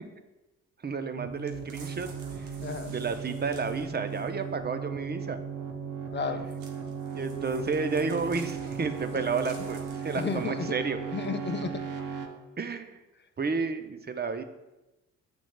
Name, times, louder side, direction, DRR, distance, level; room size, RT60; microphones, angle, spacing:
voice 1, 0.8-2.1 2.4-2.5 2.9-5.4 7.1-11.0 12.6-13.0 13.4-14.4, right 4 dB, 25° right, 8 dB, 0.7 m, -31 dB
sound 1, 1.2-12.3, right 6 dB, 50° right, 1.0 m, -37 dB
sound 2, 1.5-4.5 6.5-10.6 11.2-11.3, right 3 dB, 85° right, 0.9 m, -50 dB
voice 2, 2.6-2.9 6.1-6.5 9.1-9.2 10.1-10.7 11.1-11.9, left 5 dB, 30° left, 7 dB, 0.6 m, -33 dB
7.1 x 6.0 x 2.2 m, 1.0 s
hypercardioid pair, 50°, 39 cm